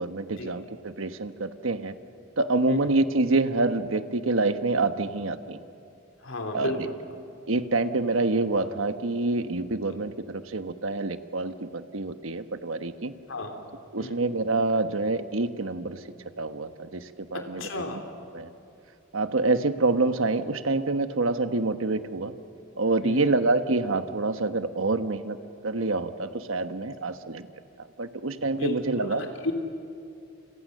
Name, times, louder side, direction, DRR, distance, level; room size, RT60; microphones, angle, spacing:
voice 1, 0.0-1.9 2.4-5.6 6.5-6.7 7.5-13.1 13.9-16.0 16.4-18.0 18.3-18.5 19.1-22.3 22.8-25.4 25.6-27.5 27.8-29.2, right 3 dB, 80° right, 10 dB, 1.2 m, -27 dB
voice 2, 6.2-6.9 13.3-13.5 14.0-14.2 17.5-18.0 23.0-23.2 28.5-29.5, left 2 dB, 75° left, 4 dB, 3.2 m, -33 dB
29.0 x 27.0 x 6.6 m, 2.5 s
head